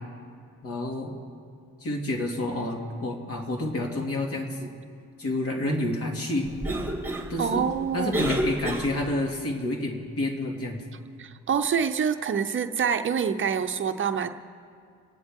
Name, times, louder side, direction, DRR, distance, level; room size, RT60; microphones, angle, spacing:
voice 1, 0.6-1.1 1.8-4.7 5.2-6.5 7.3-7.6 7.9-10.8, left 1 dB, 50° left, 1 dB, 2.4 m, -29 dB
Cough, 6.4-9.3, right 1 dB, 10° right, 2.4 m, -31 dB
voice 2, 7.4-8.2 11.2-14.3, right 7 dB, 40° right, 8 dB, 0.7 m, -26 dB
27.0 x 9.5 x 3.7 m, 2.3 s
cardioid pair, 90°, 30 cm